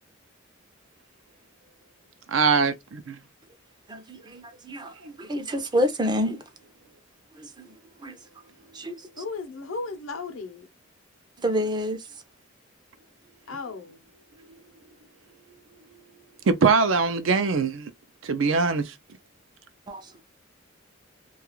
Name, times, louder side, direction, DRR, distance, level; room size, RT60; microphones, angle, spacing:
voice 1, 2.3-3.2 5.0-5.1 16.5-17.9 18.2-18.9, right 4 dB, 70° right, 0.5 m, -22 dB
voice 2, 3.9-4.9 5.2-6.4 7.4-7.7 8.0-8.2 8.7-9.0 11.4-12.0 19.9-20.2, equal, 20° right, 0.4 m, -28 dB
voice 3, 9.2-10.7 13.5-14.0, left 4 dB, 80° left, 0.7 m, -35 dB
2.4 x 2.3 x 2.9 m
head